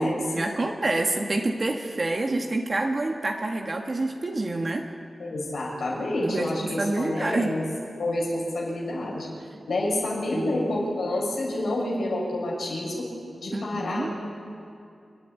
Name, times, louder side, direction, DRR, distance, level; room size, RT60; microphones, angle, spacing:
voice 1, 0.0-4.9 6.2-7.5 10.3-10.8 13.5-14.1, right 2 dB, 50° right, 2 dB, 1.6 m, -28 dB
voice 2, 5.2-7.6 8.0-9.3 9.7-13.1 13.4-14.2, left 1 dB, 90° left, -3 dB, 6.7 m, -28 dB
29.0 x 11.0 x 9.8 m, 2.5 s
cardioid pair, 55°, 0 cm